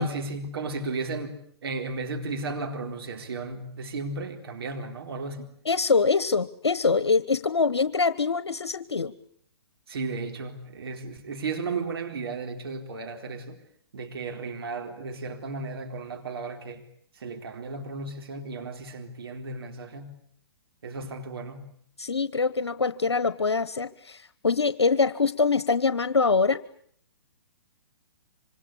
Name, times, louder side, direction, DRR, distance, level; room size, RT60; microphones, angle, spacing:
voice 1, 0.0-5.6 9.9-13.6 13.9-16.9 17.1-20.2 20.8-21.7, right 3 dB, 65° right, 4.1 m, -34 dB
voice 2, 5.6-9.1 22.0-26.6, left 4 dB, 85° left, 1.1 m, -24 dB
26.5 x 26.0 x 8.5 m
figure-of-eight pair, 125°, 14 cm